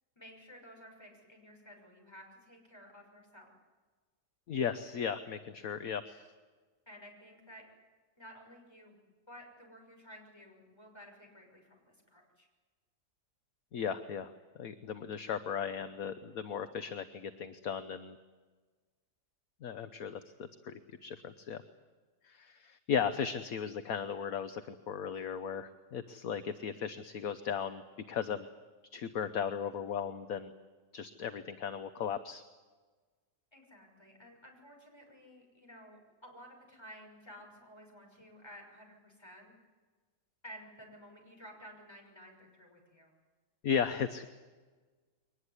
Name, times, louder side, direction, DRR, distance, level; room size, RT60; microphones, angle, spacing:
voice 1, 0.2-3.5 6.9-7.6 8.2-9.0 9.3-12.5 25.1-25.2 33.5-39.5 40.4-43.1, equal, 15° left, 1 dB, 6.1 m, -54 dB
voice 2, 4.5-6.2 13.7-14.3 14.6-18.2 19.6-21.6 22.2-27.8 28.1-28.5 28.9-30.5 30.9-32.4 43.6-44.3, left 7 dB, 65° left, 10 dB, 1.3 m, -36 dB
22.5 x 19.5 x 9.8 m, 1.4 s
omnidirectional pair, 1.7 m